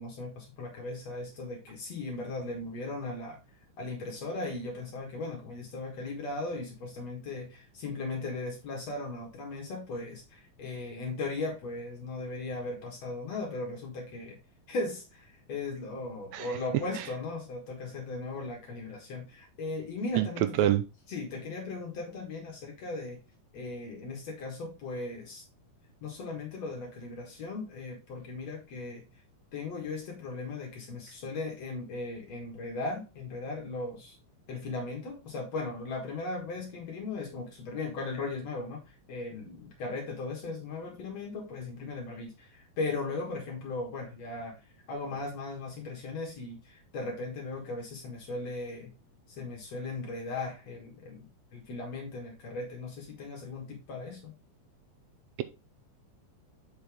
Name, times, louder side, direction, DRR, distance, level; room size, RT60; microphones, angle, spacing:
voice 1, 0.0-3.4 3.8-14.4 14.7-20.8 21.1-23.2 23.5-25.4 26.0-29.0 29.5-34.2 34.5-44.6 44.9-48.9 49.3-54.3, left 3 dB, 65° left, 2.6 m, -37 dB
voice 2, 16.3-16.5 20.1-20.3 20.6-20.8, right 12 dB, 75° right, 1.7 m, -24 dB
6.7 x 5.8 x 3.5 m
omnidirectional pair, 3.4 m